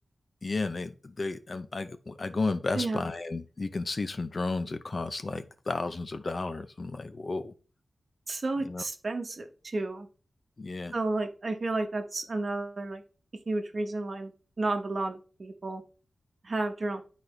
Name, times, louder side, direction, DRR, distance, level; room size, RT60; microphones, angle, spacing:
voice 1, 0.4-7.5 8.7-8.8 10.6-10.9, left 3 dB, 45° left, 11 dB, 0.6 m, -33 dB
voice 2, 2.7-3.0 8.3-10.1 10.9-13.0 13.5-14.3 14.6-15.8 16.4-17.0, right 2 dB, 45° right, 5 dB, 1.2 m, -32 dB
11.0 x 4.2 x 3.4 m, 0.36 s
wide cardioid pair, 110°, 0 cm